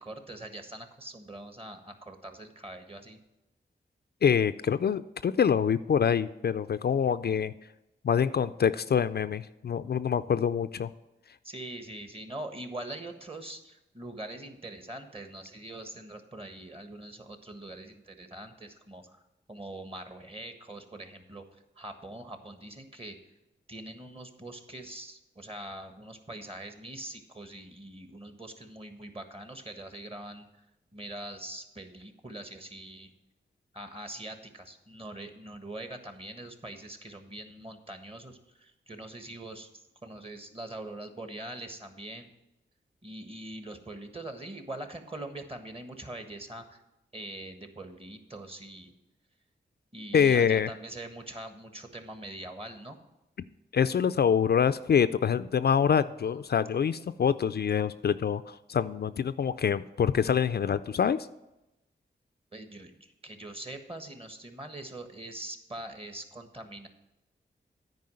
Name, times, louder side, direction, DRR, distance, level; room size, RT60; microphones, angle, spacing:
voice 1, 0.0-3.2 11.4-19.2 19.5-23.2 23.7-30.5 30.9-33.1 33.7-42.3 43.0-46.8 47.1-48.9 49.9-53.0 62.5-66.9, right 1 dB, 30° right, 7 dB, 1.4 m, -43 dB
voice 2, 4.2-7.5 8.0-10.9 50.1-50.7 53.7-61.2, left 7 dB, 55° left, 13 dB, 0.4 m, -25 dB
9.4 x 4.9 x 7.7 m, 0.93 s
cardioid pair, 45°, 20 cm